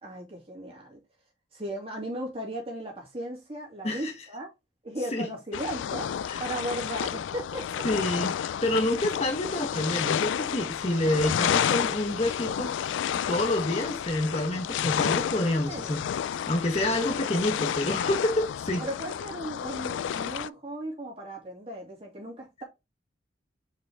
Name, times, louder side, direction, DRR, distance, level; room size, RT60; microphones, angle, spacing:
voice 1, 0.0-1.0 1.5-4.5 4.8-7.9 15.7-16.0 16.8-17.2 18.8-22.6, right 1 dB, 30° right, 2.8 m, -36 dB
sound 1, 5.5-20.5, left 9 dB, 85° left, 0.3 m, -30 dB
voice 2, 7.8-12.7 13.3-18.8, left 1 dB, 35° left, 1.1 m, -28 dB
5.2 x 5.2 x 3.5 m
head